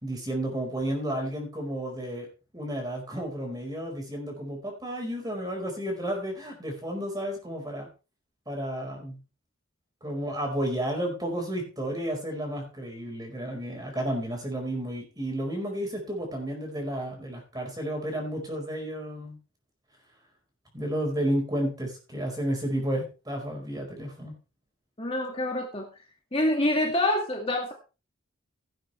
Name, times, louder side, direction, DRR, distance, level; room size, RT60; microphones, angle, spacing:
voice 1, 0.0-2.3 2.5-7.9 8.5-9.2 10.0-19.4 20.7-24.3, right 1 dB, 20° right, 2 dB, 4.9 m, -32 dB
voice 2, 25.0-25.9 26.3-27.7, left 1 dB, 25° left, 1 dB, 2.1 m, -26 dB
17.5 x 8.8 x 3.4 m, 0.32 s
head